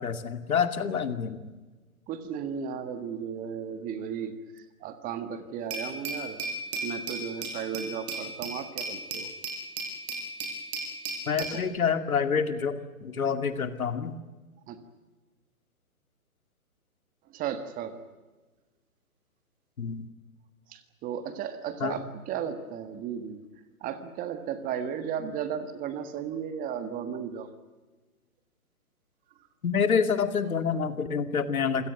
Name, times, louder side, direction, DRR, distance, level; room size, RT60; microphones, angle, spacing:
voice 1, 0.0-1.4 11.3-14.2 19.8-20.0 21.8-22.0 29.6-31.9, left 6 dB, 75° left, 9 dB, 2.5 m, -27 dB
voice 2, 2.1-6.4 6.8-9.3 11.4-11.7 14.7-14.8 17.3-18.0 20.7-23.4 23.8-27.5, right 8 dB, 20° right, 10 dB, 1.6 m, -35 dB
Glass, 5.7-11.6, right 2 dB, 45° right, 7.2 m, -35 dB
27.5 x 17.5 x 9.2 m, 1.3 s
hypercardioid pair, 140°, 43 cm